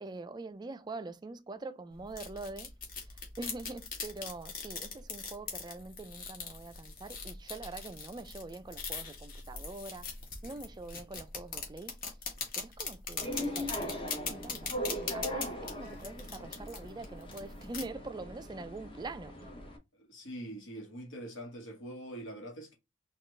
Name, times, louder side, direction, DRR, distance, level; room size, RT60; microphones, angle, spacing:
voice 1, 0.0-2.7 3.4-10.1 10.4-12.0 12.5-19.5, right 2 dB, 20° right, 0.3 m, -44 dB
sound 1, 1.9-17.8, left 4 dB, 45° left, 1.2 m, -41 dB
sound 2, 13.2-19.8, equal, 25° left, 0.6 m, -40 dB
voice 2, 20.0-22.7, right 1 dB, 75° left, 1.4 m, -44 dB
4.0 x 2.4 x 3.1 m
head